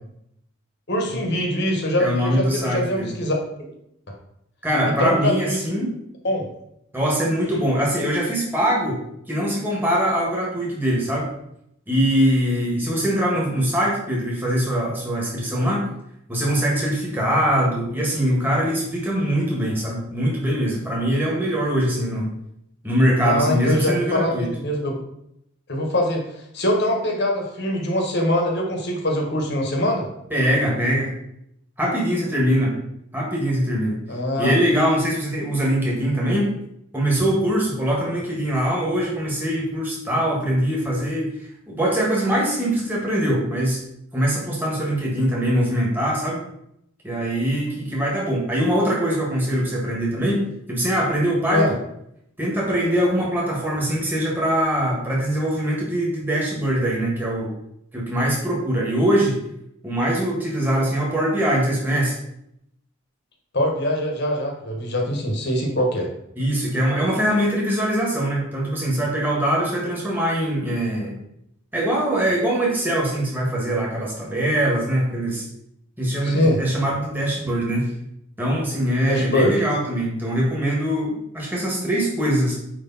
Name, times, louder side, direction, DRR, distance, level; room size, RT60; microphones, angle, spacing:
voice 1, 0.9-3.3 4.8-5.6 6.2-6.5 23.2-25.0 25.7-30.1 34.1-34.5 51.5-51.7 63.5-66.1 76.2-76.6 79.1-79.5, left 1 dB, 50° left, 1 dB, 1.4 m, -23 dB
voice 2, 2.0-3.1 4.6-5.9 6.9-9.0 9.3-11.4 11.9-15.8 16.3-22.3 22.8-24.5 30.3-31.1 31.8-32.7 33.1-34.0 34.4-36.5 36.9-43.8 44.1-46.4 47.0-51.8 52.4-57.5 57.9-59.4 59.8-62.2 66.4-71.2 71.7-75.5 76.0-77.9 78.4-82.5, equal, 10° right, -4 dB, 1.7 m, -22 dB
9.1 x 3.3 x 4.2 m, 0.77 s
head